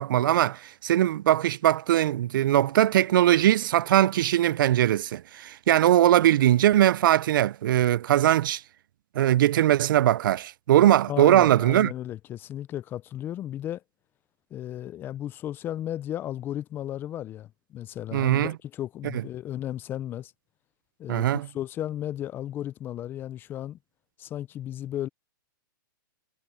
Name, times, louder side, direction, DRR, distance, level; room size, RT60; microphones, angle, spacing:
voice 1, 0.0-8.6 9.2-11.9 18.1-18.5 21.1-21.5, right 12 dB, 70° right, 0.4 m, -21 dB
voice 2, 11.1-13.8 14.5-20.3 21.0-21.3 21.5-23.8 24.2-25.1, left 12 dB, 20° left, 0.4 m, -34 dB
hypercardioid pair, 145°, 11 cm